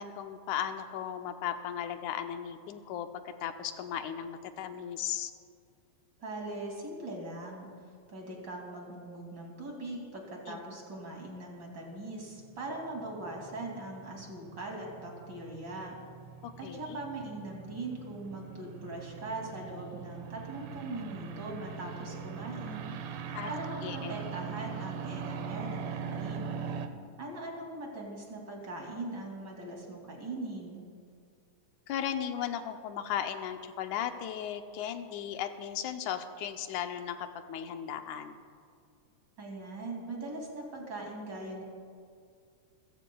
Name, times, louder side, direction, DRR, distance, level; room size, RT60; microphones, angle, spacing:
voice 1, 0.0-5.3 10.5-10.6 16.4-17.0 23.3-23.5 23.8-24.1 31.9-38.4, left 9 dB, 85° left, 7 dB, 2.1 m, -36 dB
voice 2, 6.2-7.7 8.1-16.0 16.6-22.9 23.4-26.6 27.2-30.8 39.4-41.6, right 2 dB, 35° right, -1 dB, 3.1 m, -41 dB
sound 1, 12.2-26.9, right 6 dB, 70° right, 1.4 m, -41 dB
28.5 x 15.5 x 2.3 m, 2.2 s
omnidirectional pair, 3.4 m